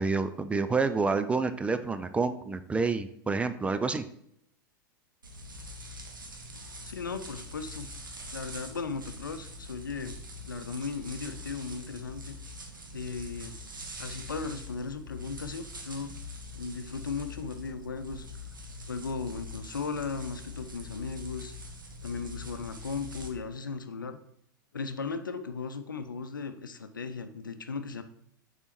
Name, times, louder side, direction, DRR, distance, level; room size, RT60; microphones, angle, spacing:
voice 1, 0.0-4.0, right 4 dB, 10° right, 10 dB, 0.4 m, -28 dB
sound 1, 5.2-23.3, left 2 dB, 75° right, 1.1 m, -44 dB
voice 2, 6.8-7.9 8.3-10.2 10.5-12.4 12.9-13.5 14.0-16.2 16.5-18.3 18.9-21.5 22.0-24.2 24.7-28.0, left 4 dB, 75° left, 10 dB, 0.6 m, -36 dB
6.7 x 4.1 x 4.5 m, 0.73 s
figure-of-eight pair, 90°, 11 cm